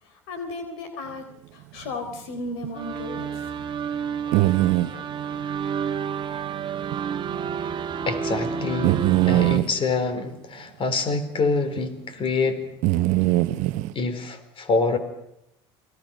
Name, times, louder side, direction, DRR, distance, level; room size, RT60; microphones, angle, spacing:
voice 1, 0.0-1.3 1.5-3.4, left 2 dB, 75° left, 7 dB, 3.8 m, -35 dB
sound 1, 2.6-2.7 3.2-3.3 4.3-4.9 6.9-7.0 7.3-7.4 8.8-9.7 11.8-11.9 12.8-13.9, right 17 dB, 65° right, 0.9 m, -21 dB
sound 2, 2.7-9.6, right 7 dB, 35° right, 1.7 m, -30 dB
voice 2, 4.3-4.6 4.9-5.0 8.0-9.0 9.3-12.6 13.9-15.0, left 4 dB, 40° left, 10 dB, 4.2 m, -26 dB
29.0 x 23.0 x 6.5 m, 0.81 s
hypercardioid pair, 75°, 14 cm